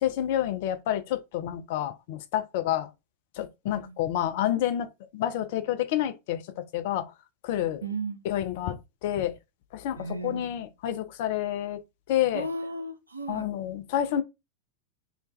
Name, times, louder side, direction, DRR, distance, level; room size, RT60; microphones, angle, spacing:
voice 1, 0.0-2.9 3.4-4.9 5.1-7.1 7.4-7.8 8.2-9.3 9.7-11.8 12.1-12.5 13.3-14.2, left 11 dB, 50° left, 0.4 m, -29 dB
voice 2, 3.7-4.0 7.8-8.2 10.0-10.6 12.3-13.5, right 2 dB, 80° right, 0.5 m, -35 dB
2.4 x 2.1 x 3.0 m
figure-of-eight pair, 90°, 0 cm